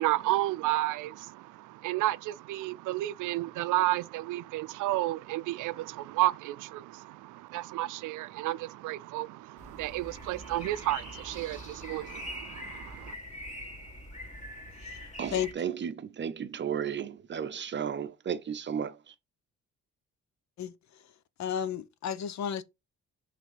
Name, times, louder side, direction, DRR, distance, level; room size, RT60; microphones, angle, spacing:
voice 1, 0.0-13.2, right 17 dB, 85° right, 0.5 m, -32 dB
sound 1, 9.6-15.5, left 1 dB, 25° left, 2.5 m, -43 dB
voice 2, 15.2-19.1, right 8 dB, 40° right, 0.7 m, -34 dB
voice 3, 21.4-22.6, left 9 dB, 65° left, 0.8 m, -32 dB
6.3 x 3.4 x 5.0 m
cardioid pair, 90°, 30 cm